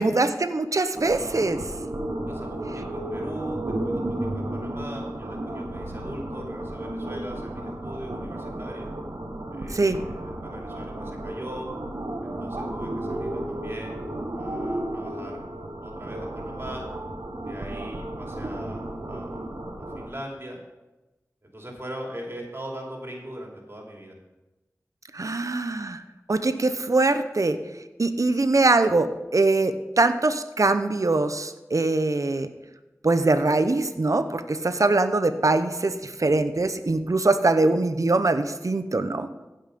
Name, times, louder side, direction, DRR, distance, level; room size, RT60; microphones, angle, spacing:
voice 1, 0.0-1.6 9.7-10.0 25.1-26.0 26.3-27.6 28.0-32.5 33.0-39.3, right 2 dB, 65° right, 10 dB, 0.8 m, -22 dB
sound 1, 0.9-20.1, right 1 dB, 85° right, 1.3 m, -33 dB
voice 2, 2.3-8.9 9.5-11.7 12.2-14.0 14.3-15.4 15.8-16.9 17.4-19.4 19.9-20.6 21.4-24.2, right 1 dB, 45° right, 0 dB, 2.7 m, -40 dB
15.5 x 5.6 x 5.3 m, 1.1 s
wide cardioid pair, 40°, 6 cm